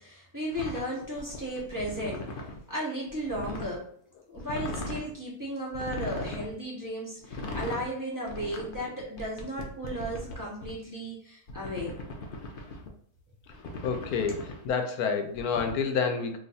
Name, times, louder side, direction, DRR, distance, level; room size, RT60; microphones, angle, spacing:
voice 1, 0.0-3.9 4.3-12.0, right 1 dB, 25° right, -4 dB, 0.4 m, -35 dB
sound 1, 0.5-2.6 3.1-3.8 4.3-5.1 5.7-6.5 7.2-7.9 8.3-10.7 11.5-12.9 13.5-14.7 15.3-15.7, left 2 dB, 65° left, 0.5 m, -38 dB
voice 2, 13.8-16.4, left 5 dB, 85° left, 5 dB, 1.1 m, -29 dB
2.5 x 2.4 x 4.0 m, 0.62 s
omnidirectional pair, 1.6 m